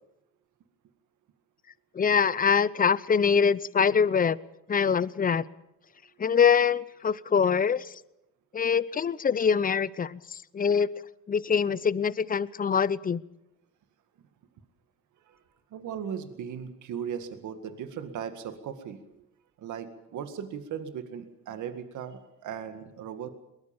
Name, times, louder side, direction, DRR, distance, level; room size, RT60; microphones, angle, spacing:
voice 1, 1.9-4.4 4.7-5.4 6.2-8.0 8.5-10.9 11.3-13.2, left 6 dB, 30° left, 18 dB, 0.7 m, -24 dB
voice 2, 15.7-19.0 19.6-23.3, right 8 dB, 75° right, 9 dB, 2.0 m, -37 dB
22.0 x 20.0 x 7.2 m, 0.86 s
cardioid pair, 90°, 30 cm